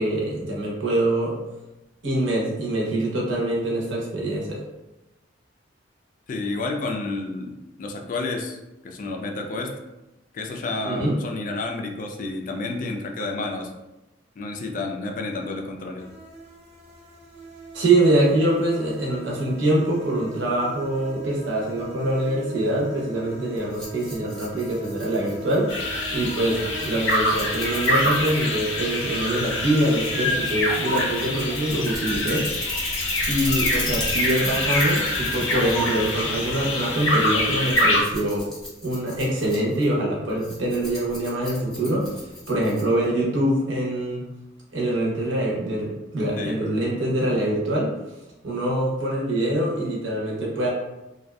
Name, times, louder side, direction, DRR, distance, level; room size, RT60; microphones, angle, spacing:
voice 1, 0.0-1.4 2.0-4.6 10.8-11.1 17.7-25.7 26.1-32.5 33.3-38.5 38.8-42.1 42.5-44.2 44.7-47.9 48.4-50.7, right 1 dB, 75° right, -3 dB, 0.7 m, -24 dB
voice 2, 6.3-8.6 8.8-9.8 10.3-13.7 14.4-16.1 26.6-26.7 46.4-46.6, left 3 dB, 45° left, 3 dB, 0.3 m, -30 dB
sound 1, 16.0-31.0, right 2 dB, 35° right, 0.4 m, -42 dB
Rattle, 23.6-43.1, left 1 dB, 5° left, 0.7 m, -36 dB
sound 2, 25.7-38.0, left 1 dB, 80° left, 0.6 m, -25 dB
2.5 x 2.2 x 2.2 m, 0.97 s
head